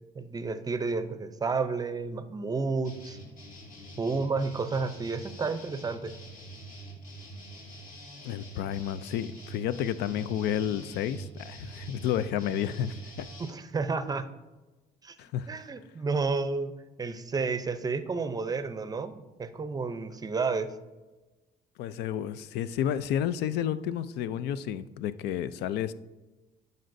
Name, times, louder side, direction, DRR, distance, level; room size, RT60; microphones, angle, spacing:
voice 1, 0.1-3.2 4.0-6.1 13.5-14.3 15.0-15.2 15.5-16.7 17.0-20.7, right 4 dB, 20° right, 10 dB, 0.5 m, -31 dB
sound 1, 2.8-13.5, right 2 dB, 50° left, 2.0 m, -45 dB
voice 2, 8.2-13.3 15.2-15.5 21.8-25.9, left 10 dB, 80° left, 15 dB, 0.4 m, -31 dB
11.5 x 5.2 x 2.6 m, 1.1 s
cardioid pair, 110°, 17 cm